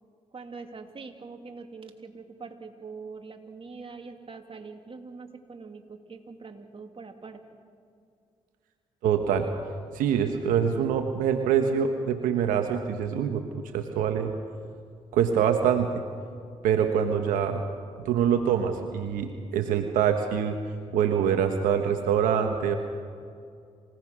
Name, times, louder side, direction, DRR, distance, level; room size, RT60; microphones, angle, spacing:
voice 1, 0.3-7.6, right 4 dB, 40° right, 4 dB, 2.7 m, -43 dB
voice 2, 9.0-9.5 9.9-14.3 15.1-16.0 16.6-17.6 18.0-20.6 20.9-22.8, right 8 dB, 90° right, 6 dB, 1.1 m, -25 dB
28.0 x 17.0 x 6.2 m, 2.3 s
supercardioid pair, 50°, 14 cm